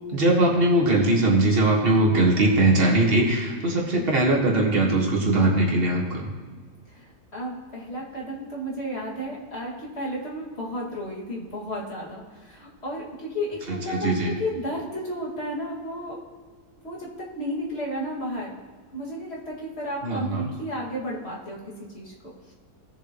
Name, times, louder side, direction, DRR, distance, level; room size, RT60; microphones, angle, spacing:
voice 1, 0.1-6.3 13.7-14.4 20.0-20.5, right 2 dB, 35° right, -1 dB, 1.7 m, -21 dB
voice 2, 6.9-16.2 16.8-18.6 18.9-22.5, equal, 40° left, -5 dB, 2.4 m, -33 dB
17.5 x 6.9 x 3.0 m, 1.5 s
omnidirectional pair, 1.8 m